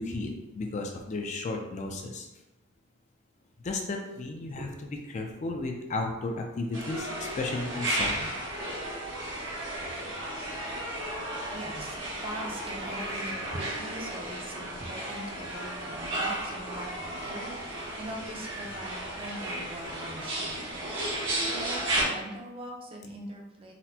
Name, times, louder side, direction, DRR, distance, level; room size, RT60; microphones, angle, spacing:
voice 1, 0.0-2.3 3.6-4.7 5.1-8.4, left 2 dB, 35° left, 2 dB, 0.3 m, -34 dB
sound 1, 6.7-22.0, right 1 dB, 65° right, 0.9 m, -34 dB
voice 2, 11.5-12.0 12.2-23.7, right 1 dB, 25° right, 0 dB, 0.5 m, -42 dB
4.1 x 2.1 x 2.7 m, 1.0 s
head